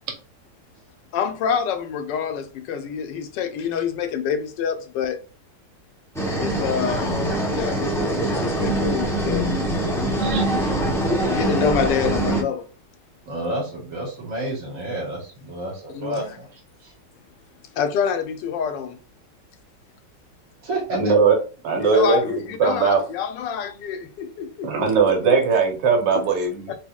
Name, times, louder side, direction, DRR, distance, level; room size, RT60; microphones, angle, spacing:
voice 1, 1.1-5.2 6.3-7.2 7.5-9.5 11.3-12.7 15.9-16.1 17.7-19.0 21.8-24.9 25.2-25.4 26.1-26.3 26.7-26.8, left 7 dB, 85° left, 1.3 m, -27 dB
sound 1, 6.1-12.4, right 1 dB, 5° left, 0.3 m, -23 dB
voice 2, 10.2-10.5 20.9-21.4 21.6-23.0 24.6-26.7, right 5 dB, 90° right, 1.6 m, -20 dB
voice 3, 13.2-16.9 20.6-21.1, right 1 dB, 50° right, 1.8 m, -30 dB
4.0 x 3.1 x 2.3 m
omnidirectional pair, 1.9 m